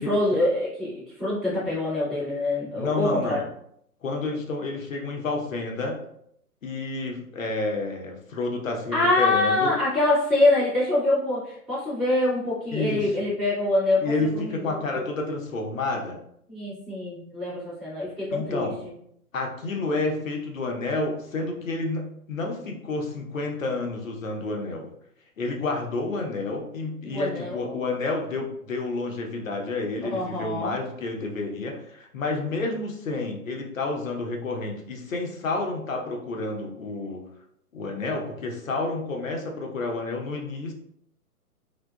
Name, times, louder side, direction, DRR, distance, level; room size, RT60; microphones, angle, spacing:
voice 1, 0.0-3.4 8.9-14.6 14.9-15.0 16.5-18.7 27.0-27.8 30.0-30.7, left 2 dB, 5° right, -13 dB, 0.6 m, -25 dB
voice 2, 2.7-3.4 4.0-6.0 6.6-9.7 12.7-13.1 14.0-16.2 18.3-18.8 19.3-24.9 25.4-37.2 37.7-40.7, left 3 dB, 60° left, 1 dB, 0.7 m, -30 dB
2.7 x 2.2 x 2.3 m, 0.71 s
figure-of-eight pair, 130°, 46 cm